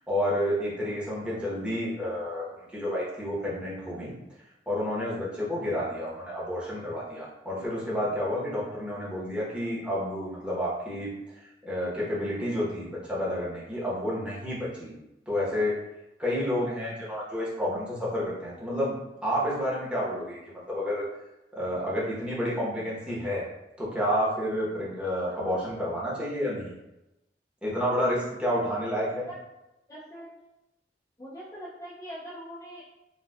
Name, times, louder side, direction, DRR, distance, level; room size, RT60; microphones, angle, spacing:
voice 1, 0.1-4.1 4.7-11.1 11.6-14.9 15.3-15.7 16.2-21.0 21.5-23.5 23.8-26.8 27.6-29.3, equal, 5° right, -8 dB, 0.9 m, -30 dB
voice 2, 29.9-30.3 31.2-32.8, equal, 20° left, -8 dB, 0.5 m, -43 dB
4.2 x 2.2 x 2.3 m, 0.93 s
head